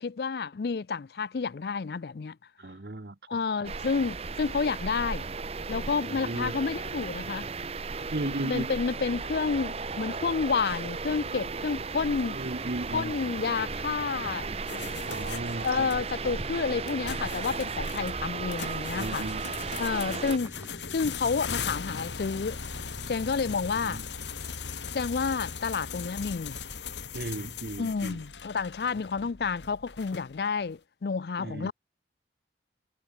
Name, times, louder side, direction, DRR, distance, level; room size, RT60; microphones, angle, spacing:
voice 1, 0.0-2.4 3.3-5.3 5.7-7.5 8.2-12.4 12.9-14.5 15.6-19.3 19.8-22.6 22.9-24.0 24.9-26.6 27.8-31.7, left 5 dB, 65° left, 0.4 m, -30 dB
voice 2, 2.6-3.2 6.1-6.6 8.1-8.8 12.3-13.1 15.1-15.9 18.9-19.5 23.8-24.0 27.1-28.2 31.4-31.7, right 2 dB, 60° right, 1.1 m, -35 dB
sound 1, 3.6-20.4, right 4 dB, 35° right, 0.7 m, -35 dB
sound 2, 11.1-24.0, equal, 15° right, 1.2 m, -49 dB
sound 3, 14.7-30.6, left 5 dB, 85° left, 2.2 m, -39 dB
head